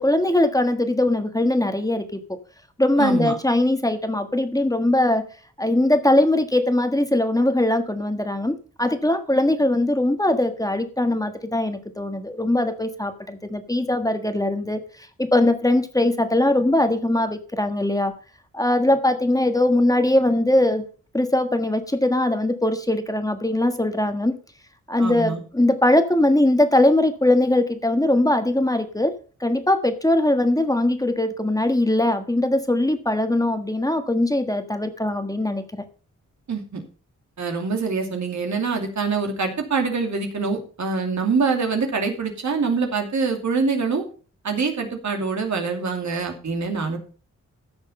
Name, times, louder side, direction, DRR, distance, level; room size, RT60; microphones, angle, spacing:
voice 1, 0.0-2.4 2.8-5.2 5.6-18.1 18.5-20.8 21.1-24.3 24.9-29.1 29.4-35.6, left 1 dB, 10° left, 7 dB, 1.4 m, -21 dB
voice 2, 3.0-3.3 25.0-25.4 36.5-36.8 37.4-44.0 44.4-47.0, right 4 dB, 65° right, 4 dB, 2.7 m, -25 dB
14.5 x 6.5 x 5.5 m, 0.38 s
wide cardioid pair, 100°, 31 cm